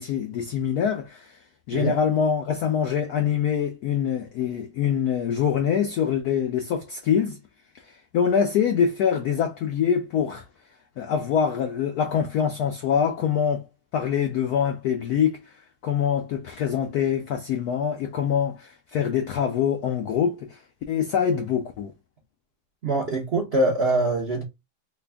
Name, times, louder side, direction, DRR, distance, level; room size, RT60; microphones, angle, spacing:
voice 1, 0.0-1.4 1.7-7.4 7.8-10.4 11.0-13.7 13.9-15.6 15.8-20.6 20.9-21.9, left 8 dB, 85° left, 0.8 m, -24 dB
voice 2, 22.8-24.4, right 2 dB, 70° right, 0.5 m, -23 dB
3.4 x 2.2 x 3.4 m
omnidirectional pair, 2.2 m